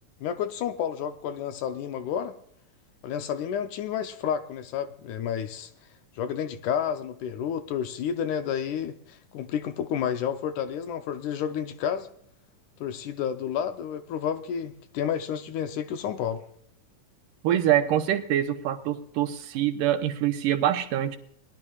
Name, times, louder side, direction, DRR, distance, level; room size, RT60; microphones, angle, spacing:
voice 1, 0.2-2.3 3.0-5.7 6.1-12.1 12.8-16.4, left 8 dB, 75° left, 2.0 m, -30 dB
voice 2, 17.4-21.2, right 11 dB, 80° right, 2.4 m, -25 dB
21.0 x 11.0 x 2.4 m
omnidirectional pair, 3.8 m